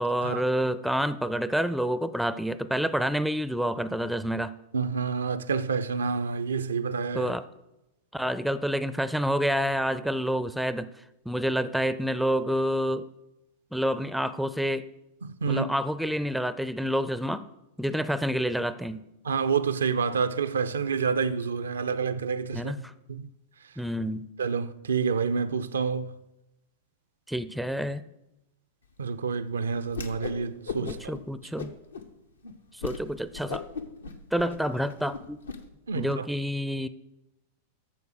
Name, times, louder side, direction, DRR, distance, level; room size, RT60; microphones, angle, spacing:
voice 1, 0.0-4.5 7.1-7.4 8.1-10.9 11.3-13.1 13.7-14.9 15.5-17.4 17.8-19.0 22.5-22.9 23.8-24.3 27.3-28.0 30.8-31.7 32.7-33.6 34.3-35.4 35.9-36.9, equal, ahead, 0.4 m, -28 dB
voice 2, 4.7-7.3 15.2-15.7 19.2-22.7 23.1-23.3 24.4-26.2 29.0-31.2 35.9-36.3, right 5 dB, 70° right, 0.4 m, -28 dB
Whoosh swoosh swish, 29.9-30.4 30.7-31.2 31.6-32.1 32.4-32.5 32.8-33.0 33.3-35.6, left 5 dB, 75° left, 0.9 m, -36 dB
8.4 x 6.7 x 6.5 m
figure-of-eight pair, 90°, 0 cm